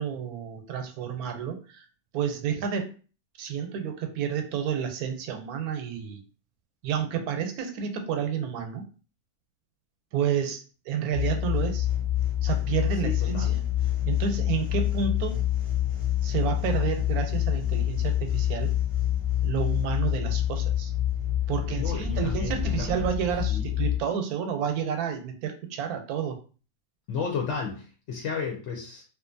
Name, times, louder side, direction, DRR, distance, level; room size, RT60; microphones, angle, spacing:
voice 1, 0.0-1.9 2.1-2.9 3.4-6.2 6.8-8.8 10.1-11.9 12.4-13.6 14.1-15.4 16.2-18.7 19.4-20.9 21.5-26.4, right 8 dB, 85° right, 5 dB, 1.1 m, -30 dB
sound 1, 11.1-24.0, left 11 dB, 35° left, 0.5 m, -27 dB
voice 2, 13.0-13.6 21.8-22.9 23.5-23.7 27.1-29.0, left 5 dB, 65° left, 1 dB, 0.8 m, -33 dB
2.5 x 2.3 x 2.5 m, 0.37 s
omnidirectional pair, 1.5 m